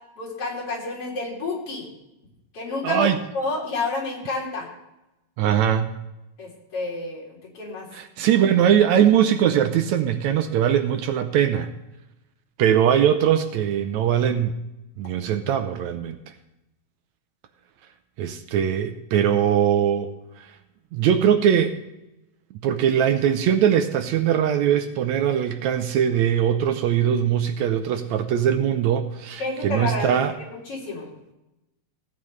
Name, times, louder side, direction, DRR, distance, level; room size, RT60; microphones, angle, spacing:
voice 1, 0.2-1.9 2.5-3.1 3.3-4.7 6.4-7.9 29.4-31.1, left 3 dB, 50° left, -4 dB, 4.2 m, -30 dB
voice 2, 2.8-3.2 5.4-5.9 7.9-11.7 12.6-14.6 15.0-16.2 18.2-20.1 20.9-21.8 22.6-30.3, right 9 dB, 75° right, 8 dB, 1.9 m, -21 dB
17.0 x 9.3 x 3.2 m, 0.94 s
omnidirectional pair, 3.5 m